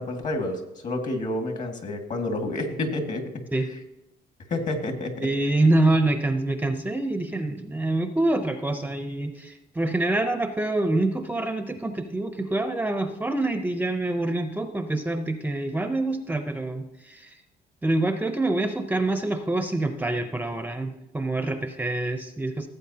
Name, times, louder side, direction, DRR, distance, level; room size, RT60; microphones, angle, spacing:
voice 1, 0.0-3.2 3.7-3.8 4.5-5.3, left 2 dB, 45° left, 4 dB, 2.0 m, -29 dB
voice 2, 5.2-17.3 17.8-22.7, right 2 dB, 10° right, 7 dB, 0.7 m, -26 dB
16.0 x 8.0 x 2.8 m, 0.96 s
cardioid pair, 110°, 17 cm